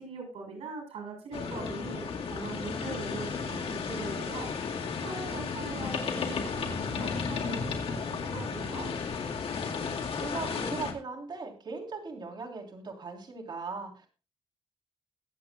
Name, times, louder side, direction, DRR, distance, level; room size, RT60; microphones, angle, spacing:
voice 1, 0.0-4.5 5.0-8.9, right 3 dB, 85° right, 2 dB, 5.9 m, -41 dB
sound 1, 1.3-10.9, left 5 dB, 70° left, 2.2 m, -34 dB
voice 2, 10.2-14.1, right 4 dB, 45° right, 1 dB, 3.4 m, -39 dB
22.0 x 8.3 x 2.3 m, 0.33 s
cardioid pair, 95°, 10 cm